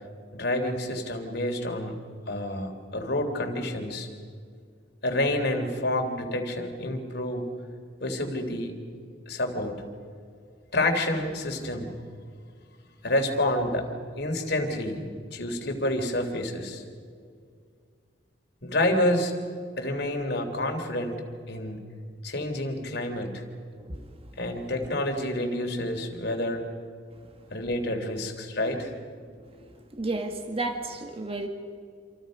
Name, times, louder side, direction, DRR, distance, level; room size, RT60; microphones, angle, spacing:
voice 1, 0.3-2.0 2.3-4.1 5.0-7.5 8.0-8.7 9.3-9.8 10.7-11.9 13.0-13.8 14.2-16.8 18.6-19.3 19.8-21.2 21.5-21.8 22.2-23.4 24.4-26.6 27.5-28.9, left 1 dB, 60° left, 3 dB, 3.5 m, -28 dB
voice 2, 29.9-31.5, right 2 dB, 30° right, 5 dB, 1.5 m, -32 dB
28.0 x 27.0 x 5.4 m, 2.2 s
head